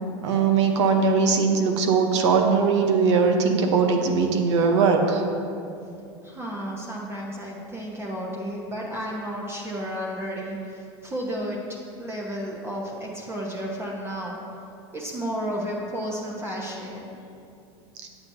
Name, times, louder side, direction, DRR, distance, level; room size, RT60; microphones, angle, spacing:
voice 1, 0.2-5.2, right 5 dB, 75° right, 3 dB, 0.8 m, -20 dB
voice 2, 5.8-11.6 12.0-14.4 14.9-17.1, equal, 15° right, -3 dB, 0.9 m, -32 dB
7.9 x 7.0 x 2.7 m, 2.6 s
hypercardioid pair, 95°, 15 cm